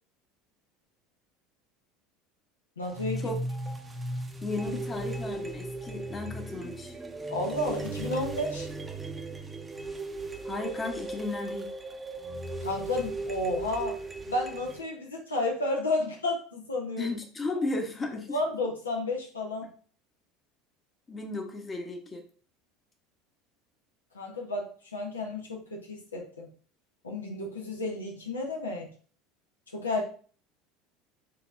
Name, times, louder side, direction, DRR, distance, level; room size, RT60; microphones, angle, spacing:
voice 1, 2.8-3.3 7.3-8.7 12.6-14.0 14.3-17.1 18.3-19.7 24.1-26.5 27.0-28.9 29.7-30.0, left 2 dB, 80° left, 0 dB, 0.7 m, -32 dB
sound 1, 2.8-14.8, right 2 dB, 15° right, 0.7 m, -37 dB
voice 2, 4.4-6.9 10.4-11.7 17.0-18.4 21.1-22.2, left 2 dB, 25° left, 4 dB, 0.9 m, -34 dB
5.6 x 2.8 x 2.4 m, 0.42 s
figure-of-eight pair, 70°, 0 cm